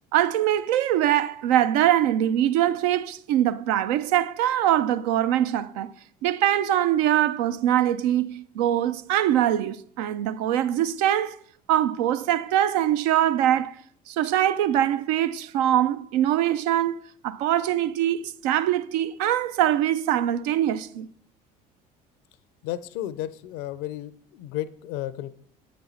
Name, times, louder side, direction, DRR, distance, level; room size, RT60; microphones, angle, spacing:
voice 1, 0.1-5.9 6.2-11.4 11.7-13.8 14.1-17.0 17.2-21.1, right 11 dB, 75° right, 0.4 m, -23 dB
voice 2, 22.6-25.3, left 13 dB, 70° left, 0.5 m, -33 dB
7.8 x 5.1 x 4.3 m
hypercardioid pair, 65°, 21 cm